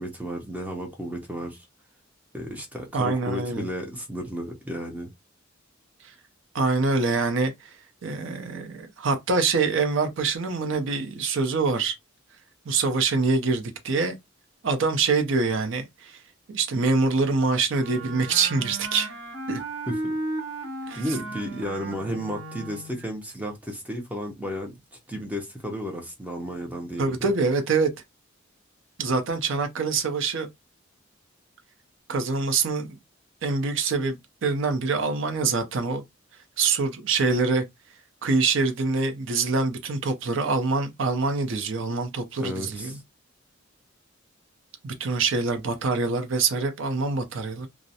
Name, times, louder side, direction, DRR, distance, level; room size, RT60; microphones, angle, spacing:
voice 1, 0.0-1.7 2.3-5.1 19.9-20.1 20.9-27.3 42.4-43.0, equal, 10° right, 0.6 m, -33 dB
voice 2, 2.9-3.7 6.5-7.5 8.0-12.0 12.7-14.1 14.6-16.2 16.5-19.1 19.5-19.6 20.9-21.0 27.0-27.9 29.0-30.5 32.1-32.9 33.4-36.0 36.6-37.6 38.2-42.9 44.8-47.7, right 4 dB, 65° right, 0.5 m, -25 dB
Wind instrument woodwind instrument, 17.8-23.1, right 2 dB, 80° right, 0.9 m, -35 dB
2.4 x 2.0 x 2.7 m
head